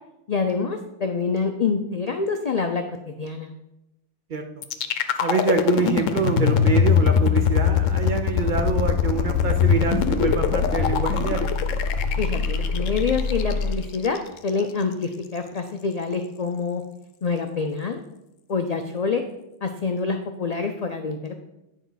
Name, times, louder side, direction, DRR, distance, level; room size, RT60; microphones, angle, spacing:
voice 1, 0.3-3.5 12.2-14.2 14.4-16.8 17.2-18.0 18.5-19.3 19.6-21.3, left 4 dB, 65° left, 6 dB, 0.4 m, -26 dB
sound 1, 4.6-14.6, left 8 dB, 90° left, 1.0 m, -22 dB
voice 2, 5.2-11.5, right 5 dB, 50° right, 6 dB, 0.7 m, -25 dB
sound 2, 8.3-13.7, left 3 dB, 40° left, 0.7 m, -27 dB
9.3 x 4.9 x 3.9 m, 0.91 s
omnidirectional pair, 1.3 m